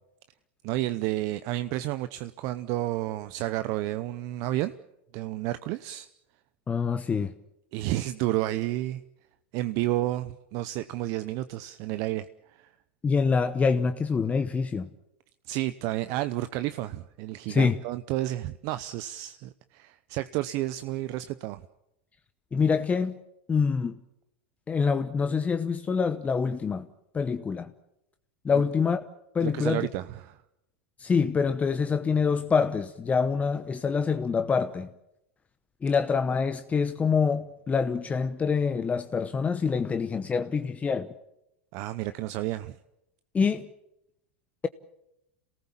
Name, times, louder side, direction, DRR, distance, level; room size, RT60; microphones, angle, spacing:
voice 1, 0.6-4.7 5.1-6.1 7.7-9.0 9.5-12.7 15.5-21.6 28.5-28.6 29.4-30.4 41.7-42.8, right 15 dB, 55° right, 0.8 m, -31 dB
voice 2, 6.7-7.3 13.0-14.9 17.5-17.8 22.5-23.2 23.5-24.0 24.7-26.9 27.1-27.7 28.4-29.1 29.3-29.9 31.0-34.9 35.8-41.1 43.3-43.7, left 5 dB, 20° left, 1.0 m, -26 dB
27.5 x 18.5 x 7.3 m
hypercardioid pair, 100°, 7 cm